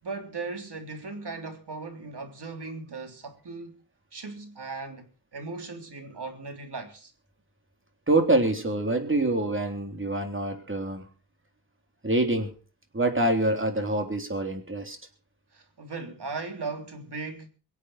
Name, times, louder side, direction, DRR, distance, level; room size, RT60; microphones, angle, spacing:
voice 1, 0.0-3.8 4.1-7.1 15.5-17.5, right 3 dB, 80° right, 3.6 m, -38 dB
voice 2, 8.1-11.1 12.0-12.6 12.9-15.0, right 2 dB, 30° right, 3.5 m, -25 dB
24.0 x 8.3 x 5.7 m
wide cardioid pair, 105°, 40 cm